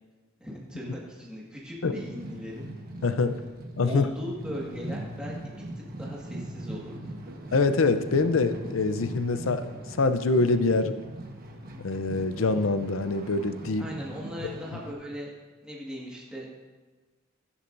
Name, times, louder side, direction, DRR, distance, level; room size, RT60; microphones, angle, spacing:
voice 1, 0.4-2.7 3.8-5.6 6.0-7.1 13.8-15.3 15.6-16.5, equal, 5° right, -5 dB, 1.7 m, -38 dB
sound 1, 1.6-14.9, right 1 dB, 45° right, 1.2 m, -40 dB
voice 2, 3.0-3.4 3.8-4.1 7.5-9.7 10.0-11.0 11.8-13.8, left 3 dB, 75° left, 10 dB, 0.6 m, -24 dB
15.0 x 10.0 x 2.6 m, 1.3 s
head